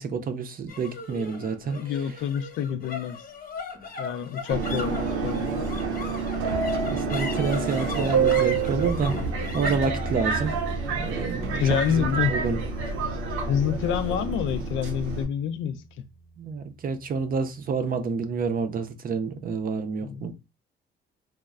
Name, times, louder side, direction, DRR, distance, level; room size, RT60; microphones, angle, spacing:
voice 1, 0.0-1.8 6.9-9.2 9.5-10.5 10.9-12.6 16.4-20.3, right 5 dB, 45° right, 0.5 m, -28 dB
sound 1, 0.7-17.2, left 3 dB, 45° left, 0.8 m, -40 dB
voice 2, 1.7-3.2 4.0-5.7 11.6-12.4 13.4-15.8 20.0-20.3, left 8 dB, 75° left, 0.4 m, -27 dB
Subway metro underground, 4.5-15.2, right 4 dB, 90° right, 0.6 m, -28 dB
3.1 x 2.0 x 2.3 m
cardioid pair, 90°, 20 cm